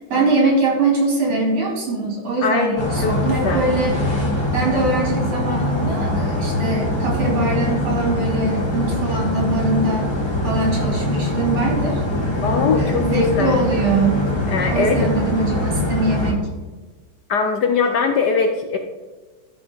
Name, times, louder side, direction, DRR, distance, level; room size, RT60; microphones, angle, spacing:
voice 1, 0.1-4.0 4.5-10.1 10.4-12.0 12.8-14.2 14.7-16.4, right 2 dB, 85° right, -1 dB, 3.8 m, -22 dB
voice 2, 2.4-3.2 3.4-3.6 12.4-13.6 14.5-15.1 17.3-18.8, left 5 dB, 65° left, 5 dB, 1.1 m, -21 dB
sound 1, 2.8-16.3, left 1 dB, 15° left, 1.5 m, -23 dB
13.0 x 4.4 x 5.7 m, 1.3 s
omnidirectional pair, 2.4 m